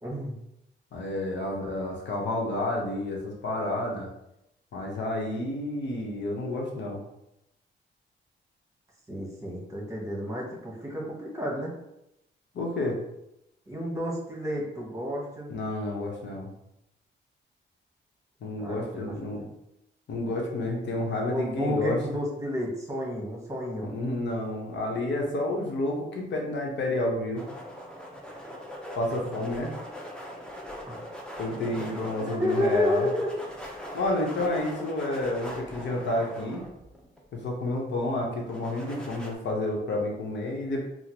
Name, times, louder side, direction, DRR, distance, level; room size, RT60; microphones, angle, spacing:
voice 1, 0.0-0.4 9.1-11.7 13.7-15.5 18.6-19.5 21.2-23.9 30.9-31.1 31.5-31.9 32.3-33.8 34.4-34.6, equal, 15° right, -2 dB, 1.0 m, -31 dB
voice 2, 0.9-4.1 4.7-7.0 12.5-13.0 15.5-16.5 18.4-19.4 20.1-22.0 23.8-27.4 28.9-29.7 31.4-33.1 33.9-36.6 37.3-40.9, left 2 dB, 70° left, 0 dB, 0.8 m, -30 dB
sound 1, 27.4-37.2 38.5-39.3, equal, 5° left, 0.5 m, -41 dB
3.7 x 2.0 x 2.9 m, 0.85 s
cardioid pair, 100°, 19 cm